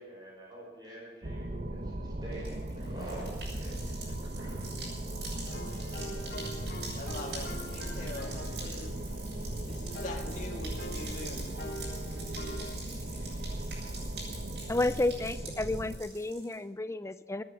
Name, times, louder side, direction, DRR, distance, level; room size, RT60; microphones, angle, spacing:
voice 1, 0.0-3.3 3.5-4.7, right 1 dB, 25° right, -3 dB, 5.2 m, -46 dB
sound 1, 1.2-16.0, right 1 dB, 50° right, 1.2 m, -38 dB
sound 2, 2.3-16.5, right 3 dB, 70° right, 6.5 m, -45 dB
sound 3, 5.4-12.8, left 1 dB, 60° left, 2.0 m, -45 dB
voice 2, 7.0-11.5, left 2 dB, 45° left, 1 dB, 2.1 m, -44 dB
voice 3, 14.7-17.4, left 2 dB, 15° left, 13 dB, 0.4 m, -31 dB
16.0 x 10.0 x 7.3 m, 1.3 s
head